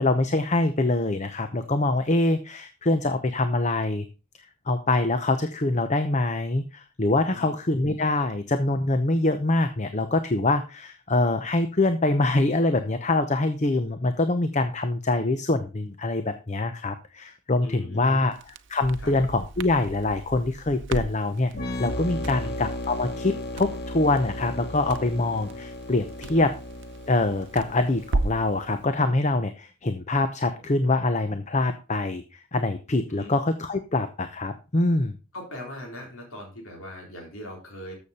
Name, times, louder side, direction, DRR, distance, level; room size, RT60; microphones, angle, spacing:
voice 1, 0.0-4.1 4.7-21.5 21.8-26.5 27.1-35.2, left 2 dB, 35° left, 9 dB, 0.8 m, -24 dB
voice 2, 17.6-18.3 19.0-19.1 22.3-22.5 26.3-26.5 27.5-27.7 33.1-33.3 35.3-37.9, left 1 dB, 75° left, 0 dB, 3.7 m, -40 dB
Crackle, 18.3-28.5, right 2 dB, 60° right, 0.7 m, -36 dB
sound 1, 21.5-29.1, left 1 dB, 50° left, 1.8 m, -35 dB
13.0 x 7.0 x 4.3 m, 0.32 s
head